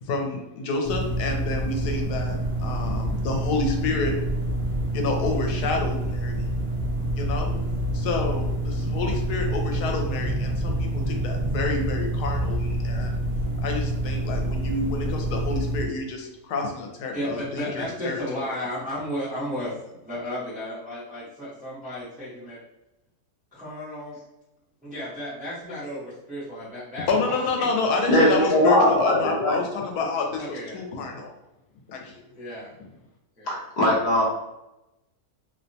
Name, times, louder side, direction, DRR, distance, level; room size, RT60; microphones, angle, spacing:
voice 1, 0.0-4.2 4.9-6.5 7.1-7.5 7.9-13.2 13.6-18.6 27.1-31.3 31.9-32.3, left 3 dB, 80° left, 2 dB, 1.1 m, -29 dB
sound 1, 0.8-15.9, right 1 dB, 70° right, 0.5 m, -27 dB
voice 2, 17.1-22.6 23.5-24.2 24.8-27.4 27.8-28.6 30.4-30.8 32.3-32.7 33.4-33.6, equal, 5° right, -9 dB, 0.7 m, -34 dB
voice 3, 28.1-29.6 33.5-34.2, left 1 dB, 50° left, -4 dB, 0.5 m, -20 dB
2.7 x 2.1 x 2.6 m, 0.94 s
omnidirectional pair, 1.6 m